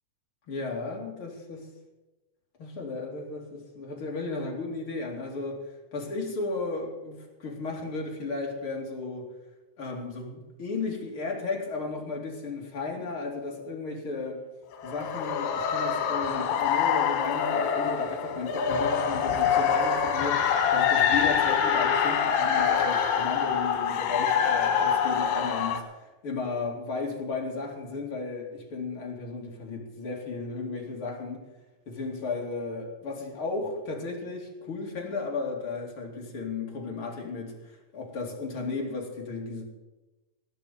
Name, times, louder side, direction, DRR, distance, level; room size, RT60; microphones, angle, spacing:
voice 1, 0.5-1.7 2.6-5.6 5.9-9.3 9.8-14.4 14.8-31.4 31.9-39.7, left 3 dB, 35° left, -1 dB, 3.1 m, -34 dB
sound 1, 14.7-25.8, left 7 dB, 90° left, 3.4 m, -25 dB
18.0 x 6.0 x 9.3 m, 1.1 s
omnidirectional pair, 4.3 m